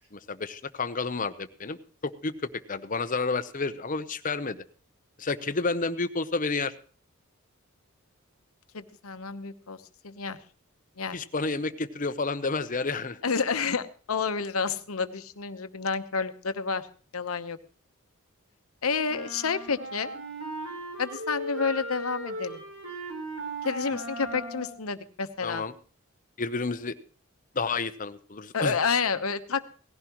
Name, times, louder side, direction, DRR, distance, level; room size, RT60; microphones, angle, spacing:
voice 1, 0.1-1.8 2.0-4.6 5.2-6.7 11.1-13.2 25.4-25.7 26.4-26.9 27.5-28.7, left 3 dB, 40° left, 12 dB, 0.8 m, -30 dB
voice 2, 8.7-9.8 10.0-10.4 11.0-11.2 13.2-16.9 17.1-17.6 18.8-20.1 21.0-22.6 23.6-25.6 28.5-29.7, left 5 dB, 80° left, 10 dB, 1.0 m, -29 dB
sound 1, 19.1-24.8, right 1 dB, 80° right, 4.0 m, -37 dB
18.0 x 15.0 x 3.0 m, 0.39 s
head